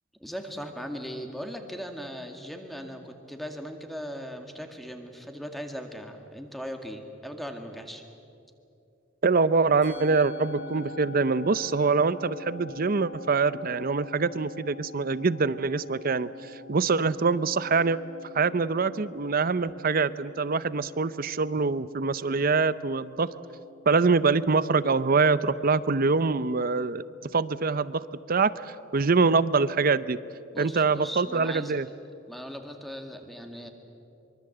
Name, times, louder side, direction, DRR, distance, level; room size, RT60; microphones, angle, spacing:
voice 1, 0.2-8.0 30.5-31.8 32.3-33.7, equal, ahead, 4 dB, 2.0 m, -38 dB
voice 2, 9.2-18.0 18.3-23.3 23.9-27.0 27.3-30.2 30.6-31.9, right 4 dB, 45° right, 16 dB, 0.6 m, -24 dB
Musical instrument, 9.8-28.3, left 3 dB, 60° left, 7.4 m, -47 dB
24.0 x 24.0 x 7.9 m, 2.6 s
head